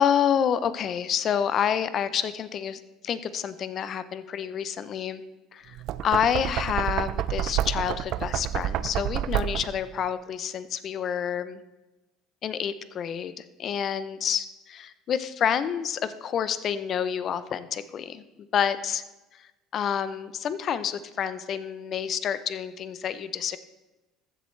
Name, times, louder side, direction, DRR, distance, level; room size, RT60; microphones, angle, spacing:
voice 1, 0.0-5.2 5.5-5.8 6.0-11.6 12.4-14.5 14.7-18.2 18.5-19.0 19.3-23.6, left 8 dB, 50° left, 13 dB, 0.6 m, -28 dB
Knock, 5.7-9.9, right 12 dB, 65° right, 0.4 m, -29 dB
15.0 x 7.3 x 3.2 m, 1.1 s
supercardioid pair, 80°, 0 cm